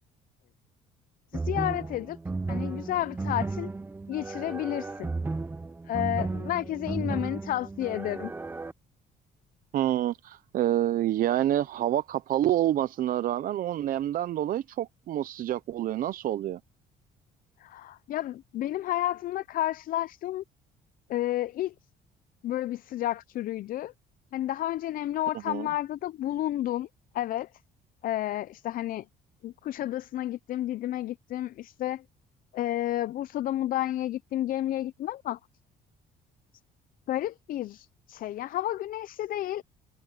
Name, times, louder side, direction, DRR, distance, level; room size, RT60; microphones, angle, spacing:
voice 1, 1.3-2.2 2.5-3.7 4.1-5.1 5.9-8.3 17.6-20.4 21.1-21.7 22.4-23.9 24.3-26.9 27.1-27.5 28.0-29.0 29.4-32.0 32.5-35.4 37.1-39.6, left 13 dB, 55° left, 0.5 m, -31 dB
sound 1, 1.3-8.7, right 3 dB, 10° right, 0.5 m, -34 dB
voice 2, 9.7-16.6 25.5-25.7, right 12 dB, 55° right, 0.6 m, -27 dB
cardioid pair, 110°, 17 cm